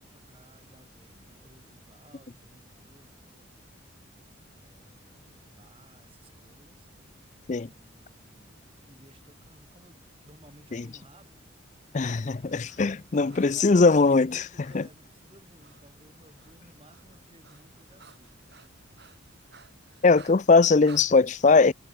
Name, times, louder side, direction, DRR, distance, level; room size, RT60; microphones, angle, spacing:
voice 1, 0.0-3.6 4.5-6.9 7.6-8.6 8.9-11.5 12.6-18.4, right 1 dB, 25° right, 7.7 m, -57 dB
Breathing, 11.7-14.9 15.6-15.8 16.1-21.1, right 5 dB, 55° right, 7.7 m, -56 dB
voice 2, 11.9-14.4 14.7-14.8 20.0-21.7, left 4 dB, 35° left, 0.4 m, -20 dB
head